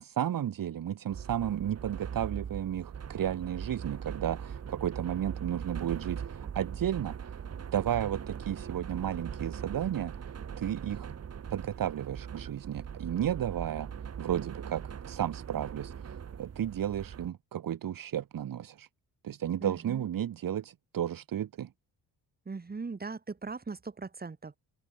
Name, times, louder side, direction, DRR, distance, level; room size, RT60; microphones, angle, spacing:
voice 1, 0.0-7.3 7.7-10.2 10.6-11.1 11.5-13.9 14.2-16.1 16.4-18.9 19.2-21.7, right 10 dB, 55° right, 2.3 m, -33 dB
sound 1, 1.1-17.3, right 7 dB, 40° right, 1.9 m, -41 dB
voice 2, 19.6-20.1 22.4-24.6, right 4 dB, 25° right, 6.6 m, -39 dB
cardioid pair, 155°, 40 cm